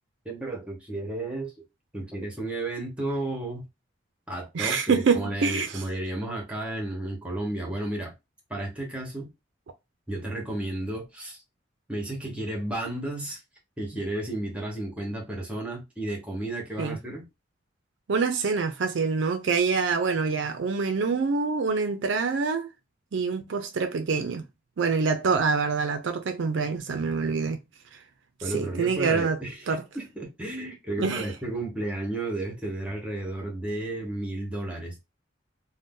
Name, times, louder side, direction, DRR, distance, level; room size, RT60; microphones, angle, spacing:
voice 1, 0.2-1.5 1.9-3.6 4.3-8.1 8.5-9.3 10.1-11.4 11.9-13.4 13.8-17.2 28.4-35.0, right 1 dB, 5° right, 1.0 m, -33 dB
voice 2, 4.5-5.8 16.8-17.0 18.1-22.7 23.1-24.4 24.8-27.6 28.5-29.4 29.7-29.8 31.0-31.3, right 5 dB, 65° right, 0.4 m, -26 dB
2.6 x 2.1 x 3.6 m
head